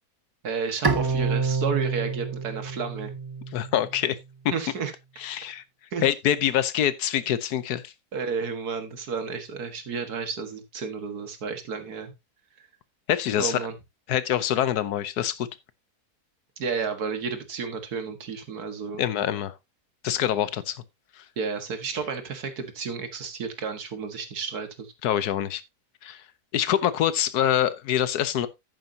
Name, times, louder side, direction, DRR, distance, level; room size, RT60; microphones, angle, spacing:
voice 1, 0.4-3.1 4.5-4.9 5.9-6.1 8.1-12.1 13.4-13.7 16.6-19.0 21.4-24.9, right 5 dB, 75° right, 2.1 m, -32 dB
Bowed string instrument, 0.8-4.1, right 4 dB, 25° right, 0.6 m, -28 dB
voice 2, 3.5-4.2 5.2-5.6 6.0-7.9 13.1-13.6 14.1-15.5 19.0-19.5 20.0-20.8 21.2-21.3 25.0-25.6 26.0-26.2 26.5-28.5, left 11 dB, 80° left, 1.3 m, -25 dB
10.5 x 9.1 x 2.8 m
omnidirectional pair, 1.7 m